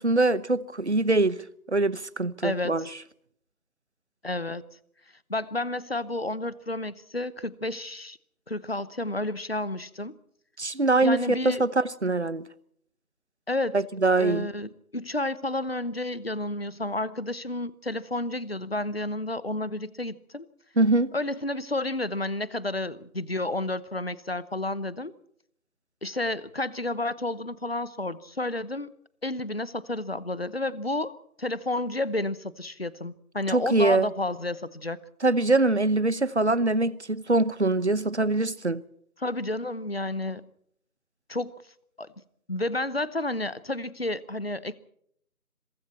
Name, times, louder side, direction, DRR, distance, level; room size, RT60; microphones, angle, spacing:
voice 1, 0.0-1.4 1.7-2.9 10.6-12.5 13.7-14.5 20.8-21.1 33.5-34.1 35.2-38.8, right 2 dB, 50° right, 1.0 m, -23 dB
voice 2, 2.4-2.7 4.2-4.6 5.3-8.2 8.5-10.1 11.0-11.6 13.5-13.8 14.2-20.5 21.1-25.1 26.0-28.9 29.2-31.1 31.4-35.0 39.2-40.5 41.3-41.5 42.0-42.1 42.5-44.8, left 2 dB, 40° left, 0.9 m, -31 dB
27.0 x 23.0 x 4.3 m
figure-of-eight pair, 170°, 45 cm